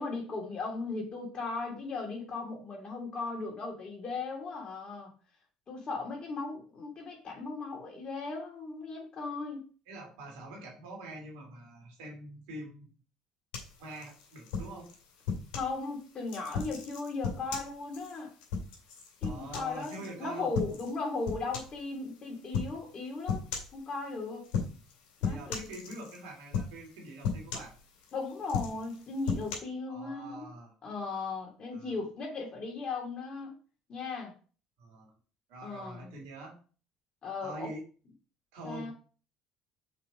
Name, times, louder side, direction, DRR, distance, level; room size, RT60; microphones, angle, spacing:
voice 1, 0.0-5.1 5.7-9.7 15.5-18.3 19.2-19.9 20.2-23.5 23.7-24.5 25.2-25.6 28.1-30.5 30.8-33.5 33.9-34.3 35.6-36.1 37.2-37.7 38.6-38.9, left 3 dB, 40° left, 1 dB, 2.7 m, -37 dB
voice 2, 9.9-13.0 13.8-14.9 19.2-20.5 25.3-27.7 29.9-30.7 31.7-32.0 34.8-35.1 35.5-36.6 37.4-37.8 38.5-38.9, right 2 dB, 70° right, 0 dB, 2.6 m, -44 dB
sound 1, 13.5-15.7 16.3-20.1 20.5-20.9 21.2-21.8 22.5-22.8 23.3-23.8 24.4-24.9 25.2-26.2 26.5-26.9 27.2-28.1 28.4-29.5, left 5 dB, 65° left, 2.1 m, -35 dB
5.8 x 4.7 x 5.0 m, 0.39 s
figure-of-eight pair, 60°, 2 cm